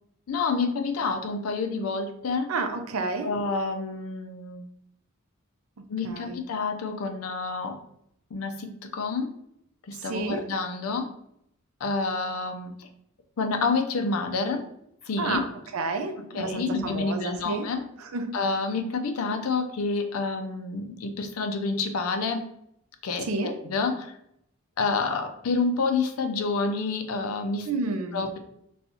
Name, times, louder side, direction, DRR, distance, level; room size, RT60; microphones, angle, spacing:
voice 1, 0.3-2.5 3.2-4.7 5.9-7.8 8.3-9.3 9.9-11.1 11.8-12.9 13.4-14.6 15.1-15.4 16.2-17.8 18.3-22.5 23.0-24.2 24.8-27.7 28.1-28.4, left 4 dB, 85° left, 7 dB, 0.5 m, -28 dB
voice 2, 2.5-3.3 6.0-6.4 10.1-10.4 15.2-15.4 15.7-17.7 18.1-18.3 23.3-23.5 27.7-28.2, right 3 dB, 85° right, 7 dB, 0.5 m, -30 dB
4.2 x 2.3 x 2.7 m, 0.75 s
head